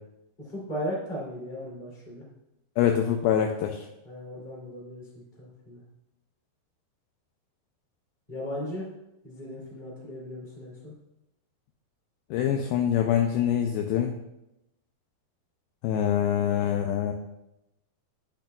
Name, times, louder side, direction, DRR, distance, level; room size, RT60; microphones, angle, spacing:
voice 1, 0.5-2.2 4.0-5.8 8.3-8.9 9.2-10.9, equal, 15° left, -5 dB, 2.1 m, -37 dB
voice 2, 2.8-3.9 12.3-14.2 15.8-17.1, left 9 dB, 85° left, 3 dB, 2.1 m, -25 dB
8.8 x 8.3 x 2.3 m, 0.91 s
omnidirectional pair, 4.6 m